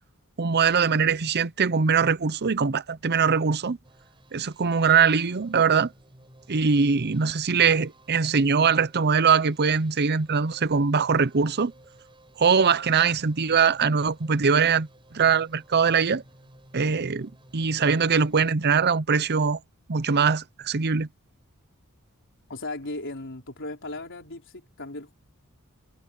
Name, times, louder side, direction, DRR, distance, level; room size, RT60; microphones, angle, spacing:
voice 1, 0.4-3.8 4.3-5.9 6.5-11.7 12.4-14.9 15.1-16.2 16.7-19.6 19.9-21.1, right 5 dB, 50° right, 0.7 m, -22 dB
sound 1, 3.8-18.6, right 1 dB, 25° right, 7.8 m, -56 dB
voice 2, 22.5-25.1, left 2 dB, 60° left, 4.3 m, -36 dB
head